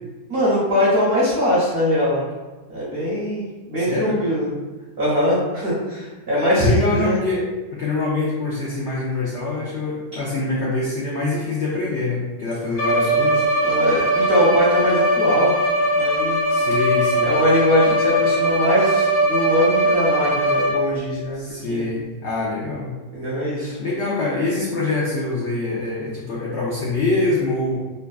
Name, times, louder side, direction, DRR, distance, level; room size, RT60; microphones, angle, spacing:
voice 1, 0.3-2.2 2.7-4.5 5.0-7.2 13.6-15.6 16.0-16.4 17.2-21.4 21.7-21.9 23.1-23.8, equal, 55° right, -8 dB, 0.7 m, -21 dB
voice 2, 3.8-4.2 6.5-7.5 7.7-13.4 16.5-17.3 21.4-23.0 23.8-27.8, left 3 dB, 80° left, -5 dB, 0.6 m, -24 dB
Bowed string instrument, 12.7-21.0, equal, 65° left, 1.1 m, -20 dB
3.4 x 2.2 x 2.3 m, 1.2 s
omnidirectional pair, 1.7 m